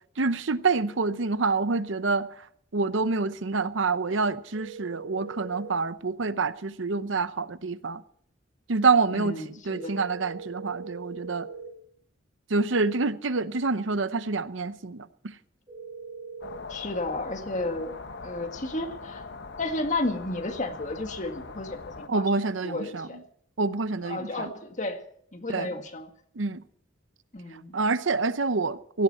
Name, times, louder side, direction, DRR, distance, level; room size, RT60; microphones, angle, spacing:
voice 1, 0.2-2.3 2.7-8.0 8.7-11.5 12.5-15.1 22.1-23.1 23.6-24.5 25.5-25.7 26.4-26.6 27.7-29.0, right 4 dB, 70° right, 0.8 m, -27 dB
sound 1, 4.5-5.7 9.7-11.7 15.7-16.6, right 5 dB, 25° right, 3.7 m, -41 dB
voice 2, 9.1-10.0 16.7-17.9 18.2-19.2 19.6-23.2 24.0-25.0 25.3-26.1 27.3-27.7, left 2 dB, 40° left, 1.9 m, -33 dB
sound 2, 16.4-22.1, left 3 dB, 60° left, 1.0 m, -41 dB
17.5 x 16.5 x 4.3 m
head